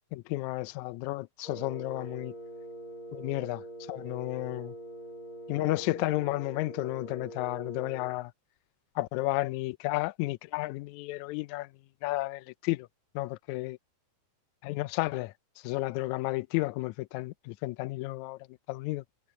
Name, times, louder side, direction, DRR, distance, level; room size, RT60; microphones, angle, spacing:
voice 1, 0.1-2.3 3.1-3.6 3.9-4.7 5.5-8.3 9.0-11.7 12.0-12.9 13.2-13.8 14.6-15.3 15.6-18.4 18.7-19.0, left 19 dB, 80° left, 1.8 m, -32 dB
Wind instrument woodwind instrument, 1.4-8.2, right 1 dB, 35° left, 2.0 m, -44 dB
omnidirectional pair, 3.5 m